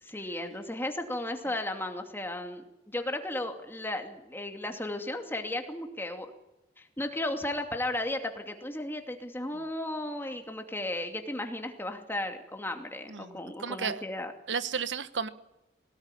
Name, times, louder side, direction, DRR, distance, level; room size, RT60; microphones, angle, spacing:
voice 1, 0.0-6.3 6.8-14.3, left 1 dB, 15° left, 5 dB, 2.5 m, -35 dB
voice 2, 13.1-14.0 14.5-15.3, right 6 dB, 90° right, 13 dB, 1.2 m, -33 dB
21.5 x 18.0 x 9.9 m, 0.94 s
head